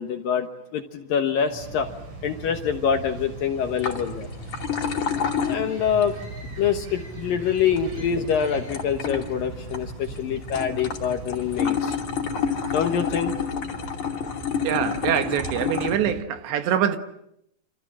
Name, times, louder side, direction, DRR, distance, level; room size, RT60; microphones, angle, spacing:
voice 1, 0.0-1.9 2.2-4.3 5.5-6.1 6.6-12.0 12.7-13.3, left 7 dB, 65° left, 2.5 m, -25 dB
sound 1, 1.5-16.2, right 3 dB, 40° right, 5.5 m, -39 dB
sound 2, 3.6-15.9, left 7 dB, 45° left, 3.5 m, -30 dB
sound 3, 4.9-13.1, left 4 dB, 90° left, 5.7 m, -47 dB
voice 2, 14.6-17.0, right 9 dB, 75° right, 3.5 m, -24 dB
28.0 x 27.0 x 7.6 m
omnidirectional pair, 5.3 m